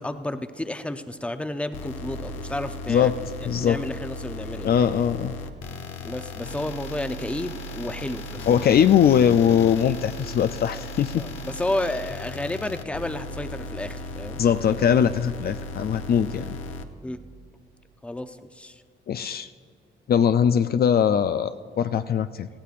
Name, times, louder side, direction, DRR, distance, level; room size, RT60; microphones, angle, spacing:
voice 1, 0.0-3.1 3.6-4.7 6.0-8.7 11.1-14.4 17.0-17.2 18.0-18.8, left 1 dB, 5° left, 9 dB, 0.6 m, -31 dB
sound 1, 1.7-16.8, left 2 dB, 80° left, 1.0 m, -36 dB
voice 2, 3.5-3.8 4.6-5.3 8.5-11.2 14.4-16.6 19.1-19.5 20.1-22.5, left 8 dB, 50° left, 10 dB, 0.4 m, -21 dB
18.5 x 14.5 x 2.5 m, 2.1 s
cardioid pair, 90°, 20 cm